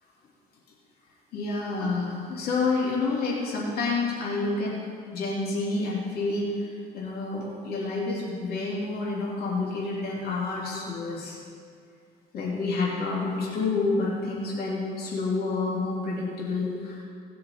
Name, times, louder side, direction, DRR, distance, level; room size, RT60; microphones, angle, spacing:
voice 1, 1.3-4.8 5.1-6.7 6.9-11.4 12.3-17.0, left 3 dB, 65° left, -5 dB, 2.7 m, -28 dB
18.0 x 6.6 x 4.2 m, 2.2 s
cardioid pair, 110°, 17 cm